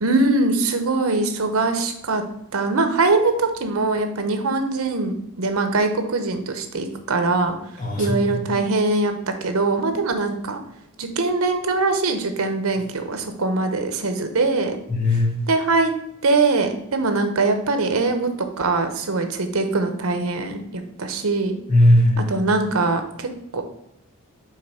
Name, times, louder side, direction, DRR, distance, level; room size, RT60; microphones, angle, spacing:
voice 1, 0.0-2.2 2.5-7.5 8.0-9.2 9.4-10.6 11.0-14.8 15.5-15.9 16.2-18.3 18.6-21.6 22.3-23.6, right 3 dB, 85° right, 7 dB, 0.9 m, -22 dB
voice 2, 7.8-8.5 14.9-15.4 21.7-22.5, left 1 dB, 40° left, -1 dB, 1.0 m, -19 dB
5.7 x 3.7 x 4.9 m, 0.79 s
head